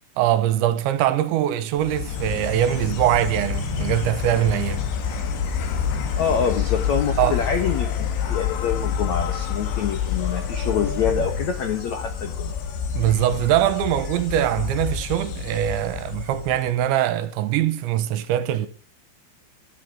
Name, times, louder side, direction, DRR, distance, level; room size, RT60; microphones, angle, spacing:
voice 1, 0.2-4.8 7.2-7.4 12.9-18.7, right 12 dB, 75° right, 3.1 m, -22 dB
Insect, 1.8-16.9, left 7 dB, 70° left, 4.1 m, -28 dB
voice 2, 6.2-12.5, left 7 dB, 90° left, 1.5 m, -26 dB
14.5 x 9.9 x 6.4 m
omnidirectional pair, 5.5 m